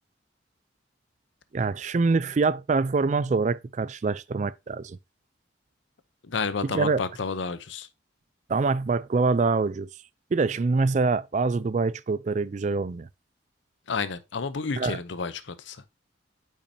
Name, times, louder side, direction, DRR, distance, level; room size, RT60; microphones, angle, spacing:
voice 1, 1.5-5.0 6.6-7.0 8.5-9.9 10.3-13.1 14.8-15.0, right 4 dB, 40° right, 0.3 m, -25 dB
voice 2, 6.2-7.9 13.9-15.8, left 5 dB, 75° left, 0.7 m, -31 dB
8.5 x 5.8 x 2.7 m
head